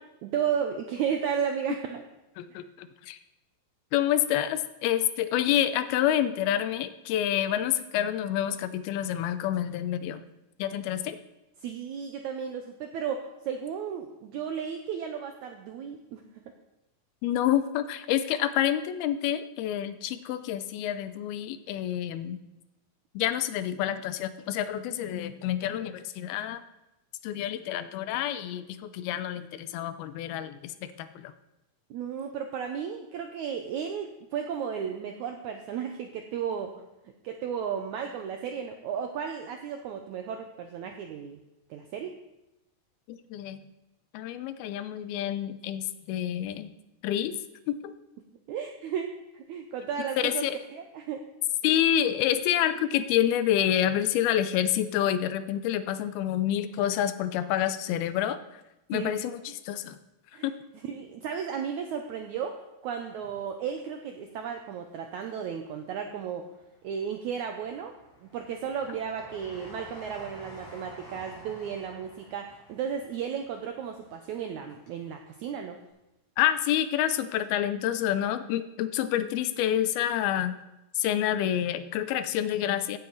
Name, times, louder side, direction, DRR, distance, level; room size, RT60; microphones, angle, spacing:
voice 1, 0.2-2.1 11.6-16.5 31.9-36.7 37.0-41.4 41.7-42.1 48.5-51.2 58.9-59.1 60.3-60.5 60.8-66.5 66.8-67.9 68.2-75.8, right 7 dB, 85° right, 5 dB, 1.7 m, -34 dB
voice 2, 2.4-3.2 3.9-10.2 10.6-11.2 17.2-22.4 23.1-26.6 27.2-30.7 31.0-31.3 43.1-43.6 44.1-46.7 47.0-47.3 47.7-47.9 50.2-50.6 51.6-58.4 58.9-60.0 60.4-60.5 76.4-80.5 81.0-83.0, left 11 dB, 90° left, 12 dB, 2.6 m, -28 dB
Train, 63.1-64.3 64.8-65.7 66.2-75.0 75.3-75.4, left 1 dB, 55° left, 6.7 m, -51 dB
16.0 x 8.5 x 4.0 m, 0.95 s
omnidirectional pair, 4.3 m